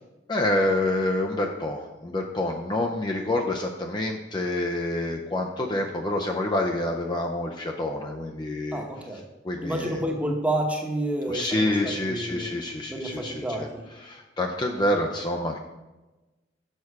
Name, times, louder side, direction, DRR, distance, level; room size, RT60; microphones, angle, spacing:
voice 1, 0.3-8.8 9.4-10.0 11.3-13.4 14.0-15.6, left 1 dB, 25° left, 1 dB, 0.5 m, -27 dB
voice 2, 8.7-9.2 9.6-12.5 12.9-13.8, right 1 dB, 10° right, 1 dB, 1.0 m, -29 dB
6.6 x 5.9 x 4.7 m, 1.1 s
head